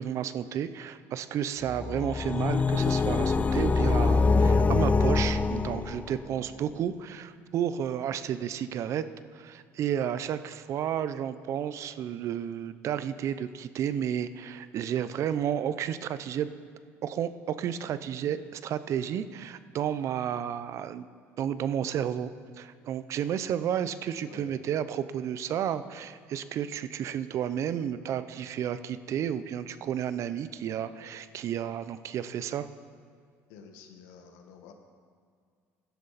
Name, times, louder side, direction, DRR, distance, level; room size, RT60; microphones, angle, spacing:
voice 1, 0.0-9.1 9.3-16.5 17.0-21.1 21.4-22.3 22.6-32.7, right 9 dB, 55° right, 13 dB, 0.6 m, -32 dB
sound 1, 1.7-6.3, left 4 dB, 25° left, 0.5 m, -24 dB
voice 2, 33.5-34.7, left 6 dB, 85° left, 5 dB, 1.4 m, -49 dB
16.0 x 11.5 x 4.1 m, 2.1 s
supercardioid pair, 95°, 6 cm